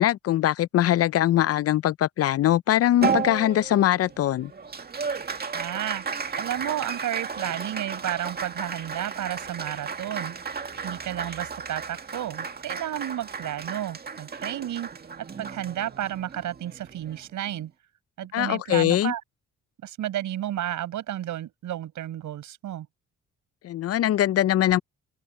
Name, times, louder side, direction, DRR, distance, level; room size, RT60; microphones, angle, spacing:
voice 1, 0.0-4.5 18.3-19.1 23.6-24.8, left 12 dB, 55° left, 0.4 m, -22 dB
Applause, 3.0-17.7, right 5 dB, 30° right, 1.9 m, -34 dB
voice 2, 5.5-6.1 6.4-10.4 10.8-14.9 15.2-17.7 18.2-19.2 19.8-22.9, right 12 dB, 75° right, 6.9 m, -32 dB
open air
cardioid pair, 90°, 30 cm